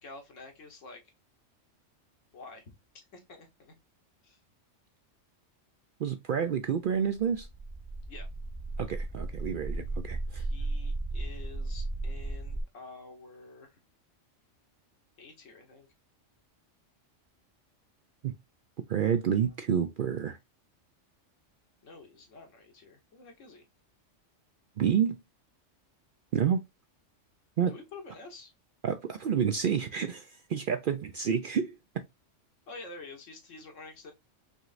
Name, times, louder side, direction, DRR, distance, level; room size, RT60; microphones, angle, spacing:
voice 1, 0.0-1.0 2.3-3.7 4.2-4.4 8.1-8.3 10.3-13.8 15.2-15.9 19.2-19.6 21.8-23.6 27.7-28.5 32.7-34.1, left 3 dB, 80° left, 1.6 m, -49 dB
voice 2, 6.0-7.5 8.8-10.4 18.2-18.3 18.9-20.4 24.8-25.2 26.3-26.6 27.6-27.7 28.8-31.8, right 8 dB, 60° right, 0.5 m, -29 dB
sound 1, 7.1-12.6, right 2 dB, 25° right, 0.8 m, -35 dB
5.3 x 3.1 x 2.5 m
omnidirectional pair, 1.3 m